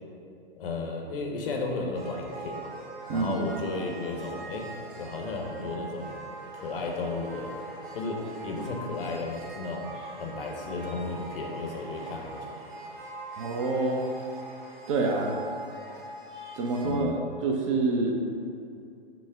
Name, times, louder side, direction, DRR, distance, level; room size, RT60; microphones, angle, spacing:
voice 1, 0.6-2.7 3.1-4.7 5.0-6.2 6.5-7.6 7.9-12.5 16.8-17.2, left 3 dB, 65° left, 1 dB, 0.8 m, -34 dB
sound 1, 1.9-16.9, right 2 dB, 55° right, 0.9 m, -42 dB
voice 2, 13.4-14.1 14.9-15.4 16.5-18.1, right 3 dB, 35° right, 1 dB, 0.4 m, -27 dB
5.9 x 2.0 x 3.5 m, 2.5 s
figure-of-eight pair, 110°, 30 cm